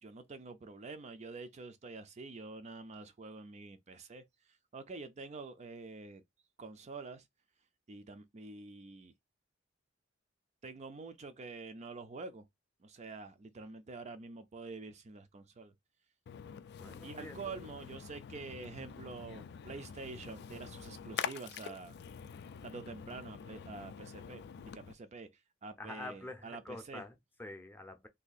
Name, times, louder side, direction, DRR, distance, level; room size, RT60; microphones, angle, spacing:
voice 1, 0.0-4.2 4.7-6.2 6.6-7.2 7.9-9.1 10.6-12.4 12.8-15.7 17.0-22.0 22.6-24.4 24.7-25.3 25.6-27.0, right 4 dB, 35° right, 0.4 m, -47 dB
Splash splatter, 16.3-24.9, left 8 dB, 55° left, 0.3 m, -46 dB
voice 2, 16.8-17.4 25.8-28.1, left 2 dB, 10° left, 0.6 m, -46 dB
2.7 x 2.7 x 3.9 m
head